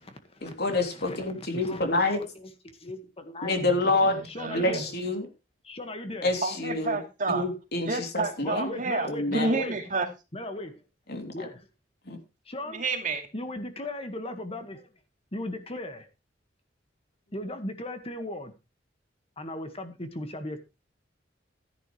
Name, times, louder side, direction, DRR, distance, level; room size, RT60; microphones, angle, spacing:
voice 1, 0.4-2.2 3.4-4.2 4.5-5.3 6.2-7.0 7.3-8.7 9.0-9.6 11.1-11.5 12.1-12.2, left 2 dB, 60° left, 4 dB, 3.2 m, -27 dB
voice 2, 0.9-3.6 4.3-4.9 5.6-6.3 8.4-9.8 10.3-10.8 11.3-11.7 12.5-12.8 13.3-14.9 15.3-16.1 17.3-18.5 19.4-20.6, left 1 dB, 35° left, 7 dB, 1.8 m, -37 dB
voice 3, 3.6-4.8 6.4-7.5 7.8-10.1 12.7-13.3, right 3 dB, 45° right, 5 dB, 2.4 m, -30 dB
13.0 x 11.5 x 3.3 m, 0.27 s
head